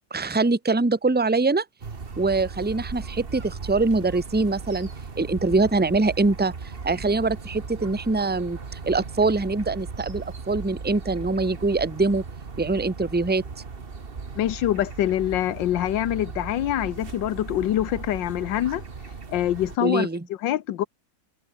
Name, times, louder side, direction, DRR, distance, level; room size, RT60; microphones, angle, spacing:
voice 1, 0.1-1.6 2.2-4.9 5.2-12.2 12.6-13.4 19.8-20.3, right 3 dB, 5° right, 1.0 m, -23 dB
sound 1, 1.8-19.8, right 4 dB, 35° right, 1.6 m, -38 dB
voice 2, 14.4-18.8 19.3-20.1 20.4-20.8, left 12 dB, 85° left, 1.6 m, -25 dB
omnidirectional pair, 1.9 m